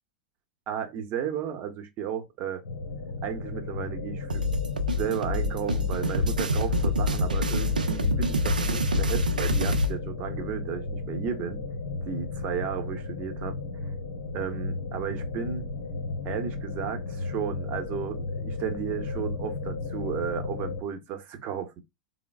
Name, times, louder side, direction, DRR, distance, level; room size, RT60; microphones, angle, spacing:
voice 1, 0.7-2.6 3.2-4.4 4.9-11.6 12.1-13.6 14.3-15.7 16.2-21.8, right 8 dB, 40° right, 0.9 m, -34 dB
sound 1, 2.6-20.8, left 3 dB, 70° left, 0.7 m, -35 dB
sound 2, 4.3-9.9, left 1 dB, 80° right, 0.5 m, -26 dB
3.8 x 2.1 x 3.4 m
figure-of-eight pair, 85°, 4 cm